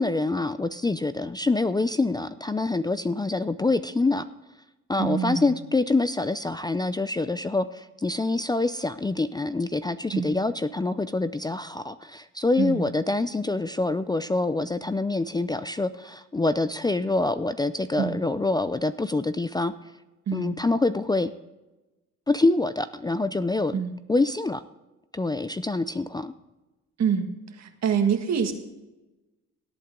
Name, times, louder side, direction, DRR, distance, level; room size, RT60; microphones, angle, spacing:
voice 1, 0.0-4.3 4.9-19.7 20.3-21.3 22.3-23.8 24.1-24.6 25.1-26.3, left 2 dB, 15° left, 13 dB, 0.4 m, -26 dB
voice 2, 5.0-5.6 10.1-10.3 12.6-12.9 18.0-18.2 20.3-20.5 23.7-23.9 27.0-27.3 27.6-28.5, right 7 dB, 60° right, 6 dB, 1.8 m, -26 dB
18.0 x 8.6 x 3.7 m, 1.0 s
cardioid pair, 90°, 30 cm